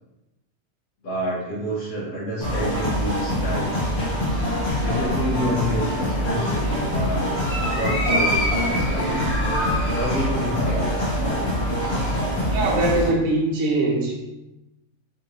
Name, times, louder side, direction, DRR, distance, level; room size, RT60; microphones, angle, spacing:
voice 1, 1.0-3.8 4.7-7.3 7.8-9.3 9.9-11.2, equal, 75° left, -9 dB, 1.4 m, -28 dB
sound 1, 2.4-13.1, equal, 50° left, 1.0 m, -24 dB
voice 2, 12.4-14.2, right 2 dB, 65° right, -3 dB, 1.0 m, -22 dB
3.5 x 2.6 x 2.8 m, 0.98 s
omnidirectional pair, 1.6 m